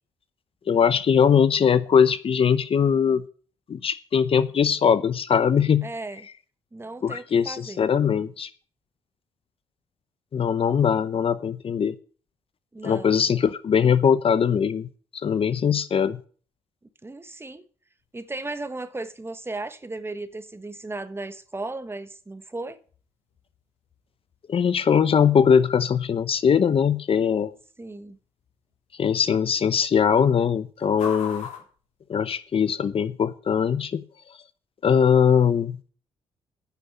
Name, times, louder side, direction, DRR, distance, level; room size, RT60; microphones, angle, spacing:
voice 1, 0.7-3.2 3.7-5.9 7.0-8.5 10.3-12.0 12.8-14.9 15.2-16.2 24.5-27.5 29.0-31.5 32.1-34.0 34.8-35.8, left 7 dB, 50° left, 0.8 m, -21 dB
voice 2, 5.8-6.3 6.7-7.9 12.7-13.2 17.0-17.6 18.1-22.8 27.8-28.2, right 2 dB, 20° right, 1.4 m, -35 dB
sound 1, 18.0-32.8, left 6 dB, 75° left, 3.9 m, -46 dB
9.8 x 6.6 x 8.3 m
supercardioid pair, 60°, 12 cm